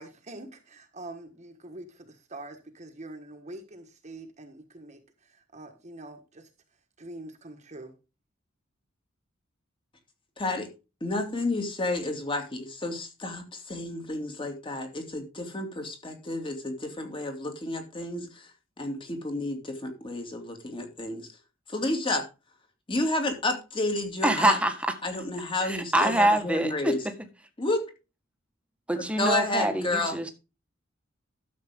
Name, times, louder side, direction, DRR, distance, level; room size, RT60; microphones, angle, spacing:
voice 1, 0.0-6.5 7.0-7.9, right 2 dB, 35° right, 1.5 m, -44 dB
voice 2, 10.4-10.7 11.0-18.5 18.8-21.3 21.7-22.3 22.9-24.6 25.0-27.0 27.6-27.8 29.0-30.1, left 2 dB, 25° left, 2.6 m, -30 dB
voice 3, 24.2-24.9 25.6-27.1 28.9-30.3, right 1 dB, 5° right, 1.5 m, -25 dB
12.0 x 7.5 x 3.7 m
head